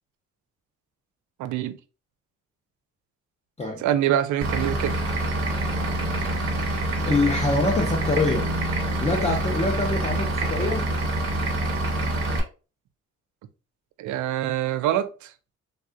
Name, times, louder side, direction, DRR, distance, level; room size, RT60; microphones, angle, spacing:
voice 1, 1.4-1.8 3.8-5.0 14.0-15.3, right 11 dB, 75° right, 0.5 m, -25 dB
Vehicle / Engine, 4.4-12.4, right 1 dB, 50° right, 1.2 m, -26 dB
voice 2, 7.0-8.5 9.0-10.9, left 2 dB, 20° left, 0.6 m, -25 dB
3.4 x 2.3 x 2.5 m
cardioid pair, 90°, 30 cm